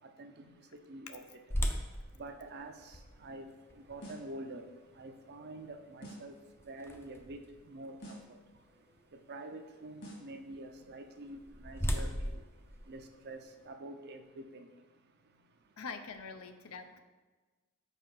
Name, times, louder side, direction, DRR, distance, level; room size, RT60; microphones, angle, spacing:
voice 1, 0.2-0.5 0.9-1.2 2.2-2.7 3.2-3.5 3.8-4.6 5.0-6.3 6.7-7.4 7.6-8.2 9.3-12.3 12.9-13.4 13.7-14.6, right 2 dB, 50° right, 6 dB, 0.6 m, -46 dB
sound 1, 1.5-7.4 8.0-8.1 8.7-8.9 11.0-13.7, equal, 10° left, 0.5 m, -39 dB
sound 2, 4.0-4.4 6.0-6.4 8.0-8.4 10.0-10.4, equal, 60° left, 1.9 m, -48 dB
voice 2, 15.8-17.0, left 5 dB, 75° left, 8 dB, 0.6 m, -44 dB
5.4 x 5.1 x 5.8 m, 1.3 s
head